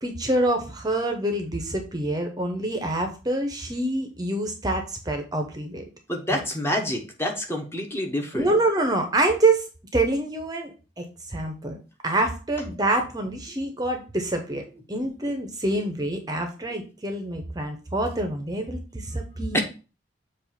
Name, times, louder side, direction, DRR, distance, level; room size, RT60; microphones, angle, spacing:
voice 1, 0.0-5.8 6.3-6.4 8.3-9.6 9.9-11.8 12.0-14.6 14.9-19.6, right 2 dB, 20° right, 4 dB, 0.7 m, -26 dB
voice 2, 6.1-8.5 19.5-19.6, left 1 dB, 15° left, 2 dB, 0.9 m, -27 dB
7.1 x 2.5 x 5.6 m, 0.34 s
head